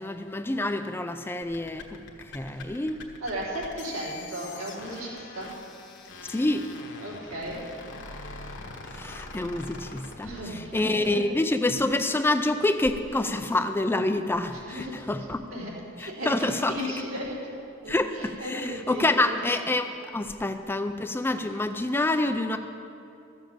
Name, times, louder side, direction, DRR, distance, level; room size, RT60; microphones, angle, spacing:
voice 1, 0.0-2.0 2.3-3.0 6.3-6.7 8.9-15.4 16.0-16.8 17.9-22.6, left 2 dB, 10° left, 8 dB, 0.4 m, -27 dB
sound 1, 1.4-11.1, left 3 dB, 60° left, 1.3 m, -43 dB
voice 2, 3.2-5.5 7.0-7.6 10.2-11.2 14.5-15.0 15.5-15.7 16.0-17.6 17.8-19.3, equal, 75° right, -6 dB, 3.7 m, -35 dB
13.5 x 7.2 x 7.6 m, 2.6 s
head